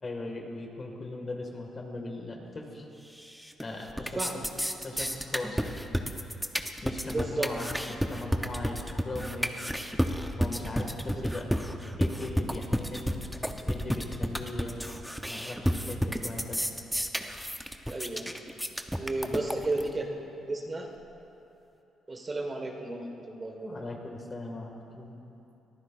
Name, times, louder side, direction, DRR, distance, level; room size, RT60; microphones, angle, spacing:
voice 1, 0.0-2.9 3.6-4.2 4.8-5.8 6.8-9.8 10.4-11.5 12.0-13.2 13.6-14.9 15.3-16.6 19.3-19.5 23.6-25.1, left 2 dB, 35° left, 1 dB, 1.8 m, -39 dB
sound 1, 3.2-3.6 3.9-19.9, equal, ahead, 0.7 m, -31 dB
voice 2, 7.1-7.5 11.1-11.2 17.9-18.3 19.0-20.9 22.1-23.8, right 2 dB, 30° right, 1 dB, 1.5 m, -33 dB
22.0 x 14.5 x 2.5 m, 2.9 s
cardioid pair, 90°, 0 cm